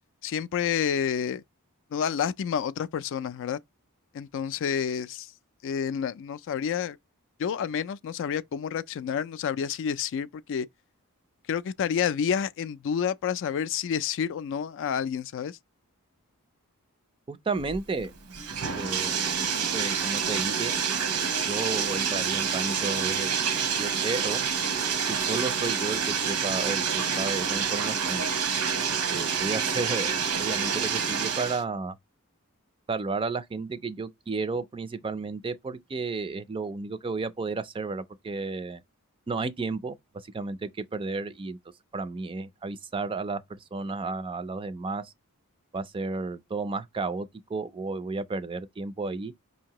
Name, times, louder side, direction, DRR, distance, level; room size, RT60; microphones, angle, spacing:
voice 1, 0.2-1.4 1.9-3.6 4.1-5.3 5.6-7.0 7.4-10.7 11.5-15.6, left 7 dB, 60° left, 0.3 m, -29 dB
voice 2, 17.3-18.1 18.8-19.2 19.7-20.7 21.5-23.3 23.8-24.4 25.1-28.2 29.1-32.0 32.9-38.8 39.3-41.6 41.9-45.1 45.7-49.3, right 3 dB, 25° right, 0.4 m, -32 dB
Bathtub (filling or washing), 17.6-31.6, right 6 dB, 85° right, 1.0 m, -28 dB
5.1 x 2.8 x 2.9 m
head